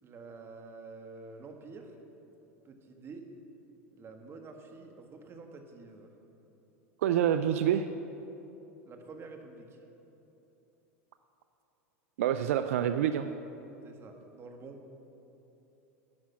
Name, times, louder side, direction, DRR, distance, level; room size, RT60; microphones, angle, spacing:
voice 1, 0.0-2.0 2.6-3.3 3.9-6.1 8.8-9.8 13.8-14.8, right 4 dB, 35° right, 4 dB, 1.6 m, -48 dB
voice 2, 7.0-7.9 12.2-13.3, right 10 dB, 75° right, 9 dB, 0.4 m, -27 dB
10.5 x 7.3 x 8.6 m, 3.0 s
hypercardioid pair, 95°, 8 cm